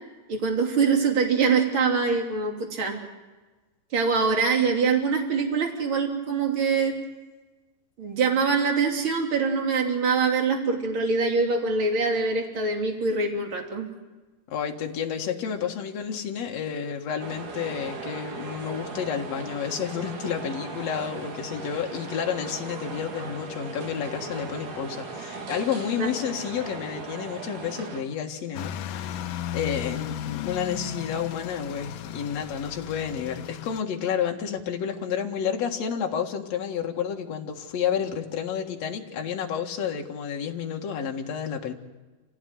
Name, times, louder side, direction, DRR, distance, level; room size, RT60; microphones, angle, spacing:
voice 1, 0.3-3.0 3.9-6.9 8.0-13.9 26.0-26.1, right 5 dB, 35° right, 2 dB, 3.5 m, -24 dB
voice 2, 14.5-41.7, left 8 dB, 50° left, 2 dB, 2.6 m, -30 dB
Chadstone Shopping Mall, 17.2-28.0, right 3 dB, 60° right, 4.1 m, -38 dB
sound 1, 28.5-33.8, left 11 dB, 70° left, 2.2 m, -35 dB
28.0 x 16.5 x 9.4 m, 1.2 s
omnidirectional pair, 4.3 m